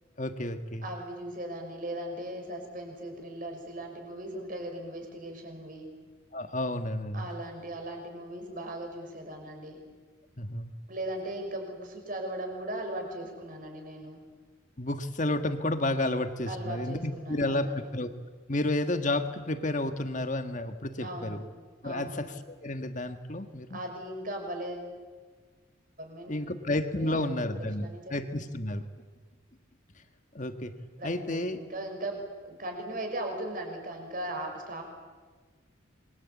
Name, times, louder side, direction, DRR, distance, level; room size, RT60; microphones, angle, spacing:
voice 1, 0.2-0.8 6.3-7.3 10.4-10.7 14.8-18.1 18.5-21.4 21.8-23.8 26.3-28.8 30.3-30.7 31.0-31.6, left 1 dB, 40° left, 8 dB, 1.6 m, -31 dB
voice 2, 0.8-5.9 7.1-9.8 10.9-14.2 16.5-17.8 21.0-21.4 21.8-22.2 23.7-24.9 26.0-26.6 27.0-28.2 31.0-34.8, right 1 dB, 40° right, 3 dB, 5.7 m, -38 dB
27.0 x 23.0 x 8.5 m, 1.4 s
head